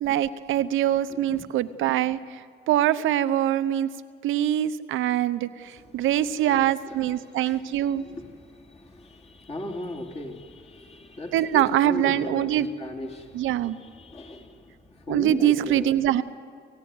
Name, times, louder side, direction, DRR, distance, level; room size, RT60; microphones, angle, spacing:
voice 1, 0.0-2.2 2.7-3.9 4.2-5.5 5.9-8.0 11.3-12.7 13.3-13.8 15.1-16.2, right 12 dB, 85° right, 12 dB, 0.9 m, -23 dB
voice 2, 1.1-1.5 5.6-16.0, left 1 dB, 30° left, 0 dB, 3.3 m, -38 dB
28.0 x 15.5 x 9.7 m, 2.1 s
cardioid pair, 90°, 20 cm